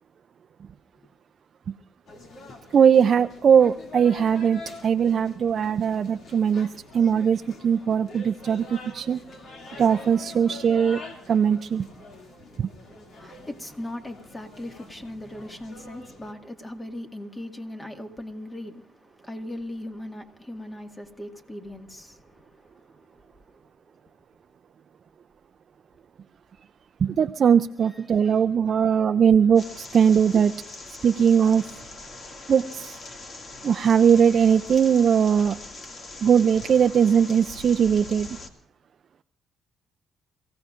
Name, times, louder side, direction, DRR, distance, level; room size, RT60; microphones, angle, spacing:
sound 1, 2.1-16.3, left 2 dB, 65° left, 2.4 m, -45 dB
voice 1, 2.7-6.7 6.9-9.2 9.8-11.0 11.3-11.9 12.6-12.7 27.0-30.5 31.0-31.6 32.5-33.0 33.6-35.6 36.2-38.3, right 7 dB, 55° right, 0.5 m, -20 dB
voice 2, 13.2-23.7 27.8-28.4 28.7-28.9, left 1 dB, 15° left, 1.9 m, -39 dB
sound 2, 29.6-38.5, left 2 dB, 45° left, 2.2 m, -42 dB
28.5 x 16.0 x 2.5 m
cardioid pair, 90°, 0 cm